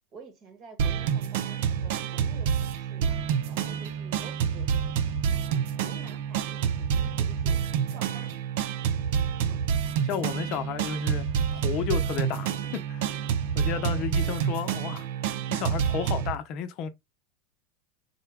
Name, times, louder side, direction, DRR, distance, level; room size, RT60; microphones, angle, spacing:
voice 1, 0.1-5.4 5.8-8.3 9.4-9.7 13.8-14.5, right 3 dB, 40° right, 1.2 m, -50 dB
sound 1, 0.8-16.3, right 7 dB, 70° right, 0.4 m, -28 dB
voice 2, 10.0-11.3 11.5-13.2 13.5-15.1 15.5-16.9, left 8 dB, 50° left, 0.6 m, -32 dB
3.7 x 2.2 x 3.4 m
supercardioid pair, 115°, 0 cm